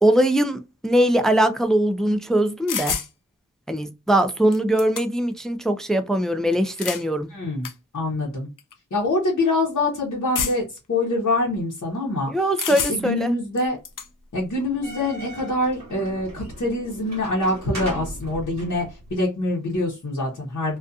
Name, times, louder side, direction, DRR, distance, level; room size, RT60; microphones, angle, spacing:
voice 1, 0.0-3.0 3.7-7.3 12.3-13.3, right 1 dB, ahead, 0.3 m, -21 dB
sound 1, 2.7-3.1 4.2-4.3 4.5-5.3 6.5-7.1 7.6-7.7 8.6-8.7 10.3-10.8 12.6-13.2 13.6-14.1, left 7 dB, 85° left, 0.5 m, -29 dB
voice 2, 7.3-7.7 7.9-8.5 8.9-12.3 12.7-13.8 14.3-20.8, left 2 dB, 60° left, 0.9 m, -25 dB
sound 2, 14.6-19.2, right 1 dB, 60° right, 0.9 m, -37 dB
2.5 x 2.3 x 2.3 m
wide cardioid pair, 75°, 31 cm